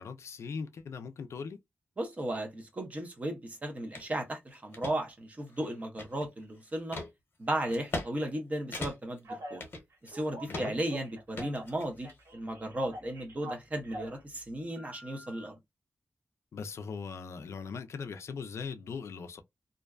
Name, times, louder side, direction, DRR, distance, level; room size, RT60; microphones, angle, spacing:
voice 1, 0.0-1.6 10.5-10.7 16.5-19.4, left 5 dB, 75° left, 0.3 m, -40 dB
voice 2, 2.0-7.0 7.4-9.6 10.0-15.5, right 1 dB, 30° right, 0.7 m, -35 dB
sound 1, 3.9-4.1 4.5-4.9 5.5-6.4 6.9-7.1 7.7-8.1 8.4-8.5 8.7-9.2 9.6-10.2 10.5-10.9 11.4-12.2, left 2 dB, 50° left, 0.9 m, -39 dB
Telephone, 9.2-9.6 10.1-11.7 12.0-14.2 14.7-15.5, equal, 90° right, 1.2 m, -44 dB
2.5 x 2.1 x 2.3 m
wide cardioid pair, 150°, 5 cm